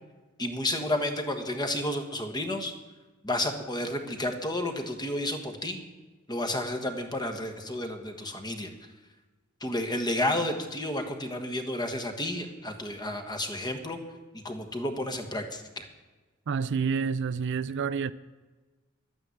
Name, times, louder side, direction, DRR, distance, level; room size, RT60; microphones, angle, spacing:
voice 1, 0.4-2.7 3.2-5.8 6.3-8.7 9.6-14.0 14.3-15.8, left 1 dB, 20° left, 1.4 m, -31 dB
voice 2, 16.5-18.1, right 6 dB, 60° right, 0.4 m, -28 dB
11.5 x 9.1 x 9.3 m
head